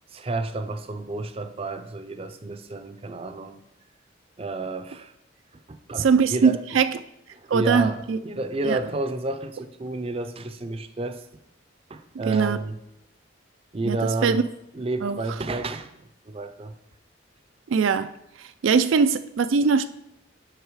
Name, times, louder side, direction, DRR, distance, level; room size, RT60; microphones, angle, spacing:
voice 1, 0.1-3.6 4.4-5.1 5.7-6.6 7.3-11.2 11.9-12.7 13.7-14.4 14.7-15.9 16.3-16.8, right 2 dB, 30° right, 0.5 m, -30 dB
voice 2, 6.0-7.0 7.5-8.2 8.6-8.8 12.3-12.6 13.8-14.4 15.0-15.2 17.7-18.1 18.4-19.8, right 5 dB, 85° right, 0.4 m, -21 dB
8.2 x 5.4 x 4.7 m
head